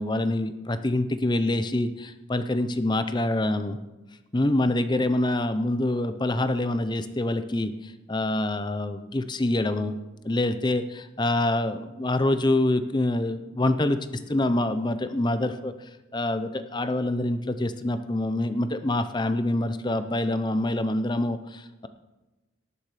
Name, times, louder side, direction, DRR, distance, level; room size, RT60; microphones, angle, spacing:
voice 1, 0.0-3.8 4.3-9.9 10.2-14.0 14.3-15.7 16.1-21.9, left 1 dB, 20° left, 10 dB, 0.6 m, -26 dB
18.5 x 7.1 x 4.9 m, 1.1 s
head